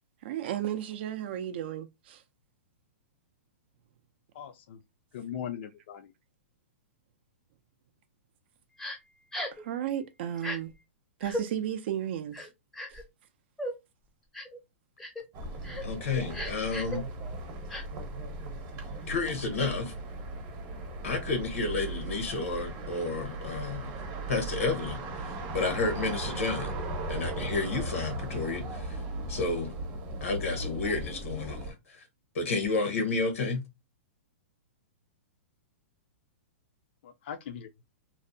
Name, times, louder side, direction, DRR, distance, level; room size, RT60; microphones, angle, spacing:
voice 1, 0.2-2.2 9.5-10.7 11.2-12.5 12.9-13.0, right 10 dB, 50° right, 0.4 m, -34 dB
voice 2, 4.4-4.8 5.1-6.1 37.0-37.7, left 9 dB, 55° left, 0.4 m, -39 dB
Crying sobbing, 8.8-9.0 9.3-9.6 10.4-10.6 11.2-11.4 12.3-13.0 13.6-13.7 14.3-14.6 15.0-15.2 15.6-15.8 16.3-17.0 17.7-17.8, left 1 dB, 5° left, 0.5 m, -36 dB
sound 1, 15.3-31.7, right 2 dB, 30° right, 0.8 m, -37 dB
voice 3, 15.8-17.0 19.1-19.9 21.0-23.9 24.3-26.7 27.1-29.0 29.3-29.7 30.2-32.1 32.3-33.6, left 3 dB, 90° left, 0.8 m, -31 dB
2.6 x 2.0 x 2.6 m
hypercardioid pair, 150°, 7 cm